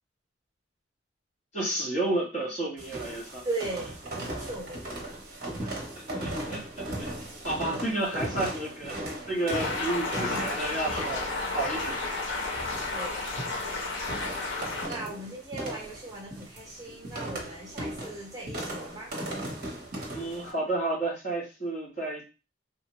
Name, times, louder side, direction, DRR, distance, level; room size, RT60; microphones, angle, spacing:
voice 1, 1.5-3.4 6.1-6.6 7.0-7.1 7.4-9.0 9.3-12.0 14.8-15.1 20.1-22.2, right 2 dB, 35° left, -5 dB, 1.1 m, -31 dB
sound 1, 2.8-20.5, right 1 dB, 45° right, 0.8 m, -38 dB
voice 2, 3.4-3.9 4.3-4.8 12.9-13.3 14.9-19.1, right 2 dB, 20° right, -4 dB, 0.9 m, -37 dB
sound 2, 9.5-14.9, left 3 dB, 80° left, 0.7 m, -32 dB
3.0 x 2.1 x 2.9 m, 0.31 s
head